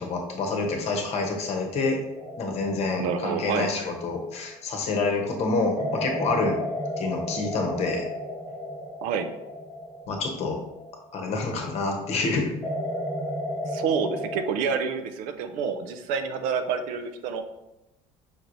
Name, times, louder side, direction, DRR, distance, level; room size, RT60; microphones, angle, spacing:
voice 1, 0.0-2.0 2.4-6.6 7.0-8.0 10.1-10.6 11.1-12.5, left 3 dB, 50° left, 2 dB, 0.9 m, -27 dB
sound 1, 2.2-4.8 5.8-11.6 12.6-14.4, equal, 20° right, 0.9 m, -34 dB
voice 2, 3.0-3.7 9.0-9.3 13.7-17.4, right 6 dB, 75° right, 8 dB, 0.5 m, -28 dB
5.2 x 3.0 x 2.6 m, 0.92 s
cardioid pair, 135°, 14 cm